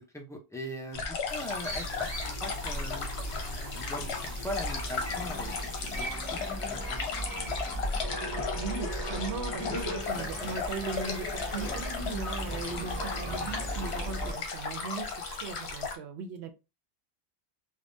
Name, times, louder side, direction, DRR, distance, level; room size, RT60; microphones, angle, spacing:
voice 1, 0.1-1.9 2.4-3.1 3.7-5.5 6.0-6.4 6.7-7.1, equal, 5° left, 0.4 m, -40 dB
sound 1, 0.9-16.0, left 5 dB, 75° left, 0.9 m, -36 dB
sound 2, 1.3-16.0, right 1 dB, 30° right, 0.7 m, -45 dB
sound 3, 1.6-14.3, equal, 25° left, 1.1 m, -37 dB
voice 2, 8.2-16.5, right 4 dB, 80° right, 0.9 m, -39 dB
3.4 x 2.3 x 2.6 m
omnidirectional pair, 1.1 m